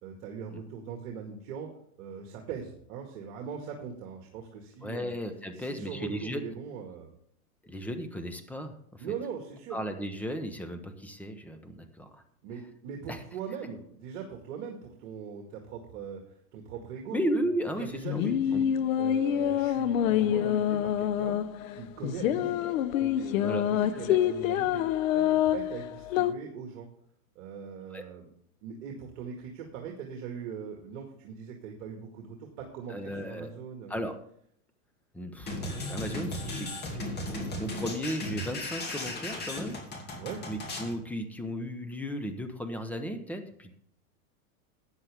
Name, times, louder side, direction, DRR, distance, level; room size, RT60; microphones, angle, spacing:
voice 1, 0.0-1.7 2.0-5.1 5.5-7.1 9.0-9.8 12.4-16.2 16.5-17.2 17.8-18.7 19.0-21.4 21.7-22.6 22.9-24.8 25.1-26.9 27.4-28.2 28.6-34.0 40.1-40.4, right 7 dB, 55° right, 1 dB, 2.1 m, -41 dB
voice 2, 4.8-6.4 7.6-9.0 9.7-12.1 13.1-13.2 17.1-18.6 23.4-23.6 23.9-24.2 27.9-28.0 32.9-33.5 33.9-34.1 35.1-39.8 40.5-43.7, equal, 5° left, 6 dB, 0.9 m, -35 dB
sound 1, 17.8-26.3, left 10 dB, 65° left, 0.8 m, -27 dB
sound 2, 35.5-40.9, left 1 dB, 25° left, 2.4 m, -36 dB
14.0 x 9.6 x 3.6 m, 0.65 s
supercardioid pair, 140°, 44 cm